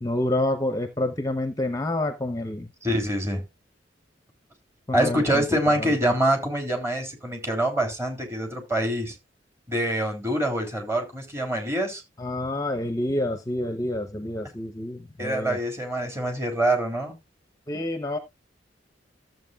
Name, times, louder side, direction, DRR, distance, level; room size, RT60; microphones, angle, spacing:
voice 1, 0.0-2.7 4.9-5.9 12.2-15.6 17.7-18.2, left 1 dB, 20° left, 0.8 m, -28 dB
voice 2, 2.8-3.4 4.9-9.1 9.7-12.0 15.2-17.2, right 1 dB, 15° right, 3.3 m, -25 dB
14.0 x 7.7 x 2.4 m
head